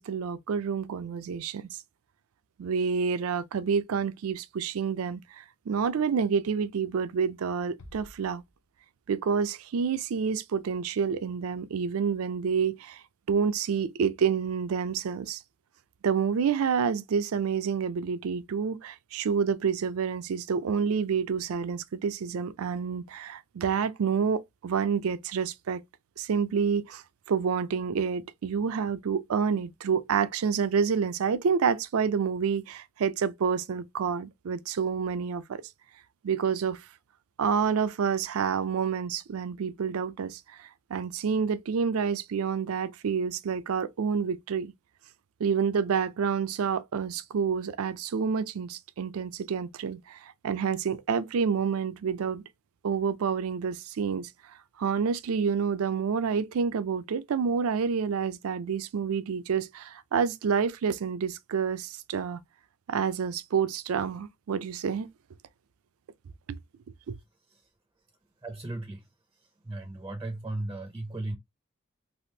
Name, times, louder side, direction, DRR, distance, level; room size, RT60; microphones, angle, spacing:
voice 1, 0.0-1.7 2.6-8.4 9.1-13.0 13.3-15.4 16.0-25.8 26.2-27.0 27.3-35.6 36.2-36.8 37.4-44.7 45.4-52.4 52.8-54.3 54.8-62.4 62.9-65.1 66.5-66.6 67.1-67.2, right 6 dB, 85° right, 0.4 m, -28 dB
Bass drum, 7.8-9.2, equal, 85° left, 0.7 m, -52 dB
voice 2, 68.4-71.4, right 2 dB, 15° right, 0.4 m, -37 dB
3.4 x 2.4 x 2.7 m
head